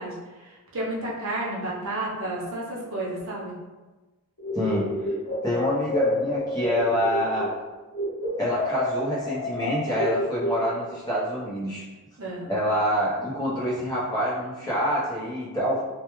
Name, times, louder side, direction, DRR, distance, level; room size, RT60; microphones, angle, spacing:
voice 1, 0.0-3.6 12.2-12.5, right 1 dB, 65° right, -5 dB, 0.7 m, -32 dB
sound 1, 4.4-7.6 7.9-11.0, equal, 70° left, 1.1 m, -29 dB
voice 2, 4.5-4.9 5.4-7.5 8.4-11.8 12.5-15.8, equal, 15° left, -9 dB, 0.7 m, -26 dB
2.3 x 2.2 x 3.0 m, 1.2 s
head